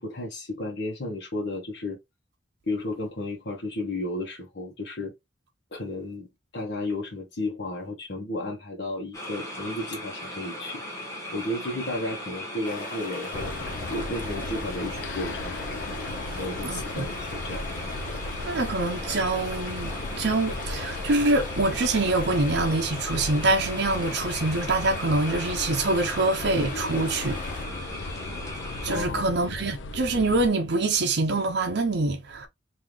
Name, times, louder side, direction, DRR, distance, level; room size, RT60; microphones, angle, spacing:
voice 1, 0.0-2.0 2.7-5.1 5.7-6.3 6.5-10.8 11.3-13.5 13.9-15.8 16.4-17.7 28.9-29.3, left 2 dB, 65° left, 1.1 m, -33 dB
sound 1, 9.1-29.0, left 1 dB, 15° left, 1.3 m, -38 dB
sound 2, 12.6-27.7, left 2 dB, 45° left, 1.4 m, -40 dB
sound 3, 13.3-30.5, left 2 dB, 85° left, 0.5 m, -36 dB
voice 2, 16.6-17.1 18.4-27.4 28.8-32.5, right 2 dB, 65° right, 0.6 m, -25 dB
3.7 x 2.7 x 3.1 m
head